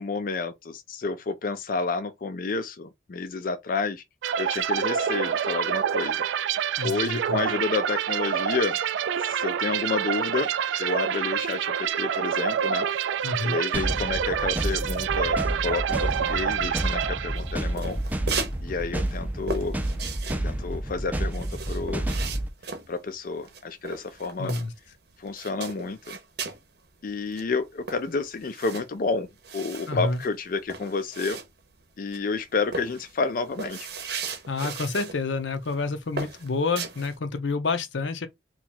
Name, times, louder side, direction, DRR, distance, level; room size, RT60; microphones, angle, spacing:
voice 1, 0.0-4.0 4.4-6.3 6.8-8.8 9.2-10.5 10.8-12.9 13.4-18.0 18.6-19.8 20.4-22.1 22.9-24.5 25.2-26.2 27.0-29.3 29.5-31.4 32.0-33.9, left 4 dB, 50° left, 0.4 m, -30 dB
sound 1, 4.2-17.8, right 8 dB, 80° right, 0.3 m, -27 dB
voice 2, 6.8-7.4 13.2-13.6 24.4-24.7 29.9-30.2 34.5-38.3, left 3 dB, 85° left, 0.7 m, -28 dB
sound 2, 13.7-22.5, right 1 dB, 10° right, 0.4 m, -30 dB
sound 3, 17.4-18.6 18.9-25.0 25.3-26.7 27.0-27.1 27.3-31.8 32.1-32.4 32.7-35.2 35.5-35.8 36.2-37.2, right 4 dB, 60° right, 0.8 m, -36 dB
2.9 x 2.4 x 4.2 m
head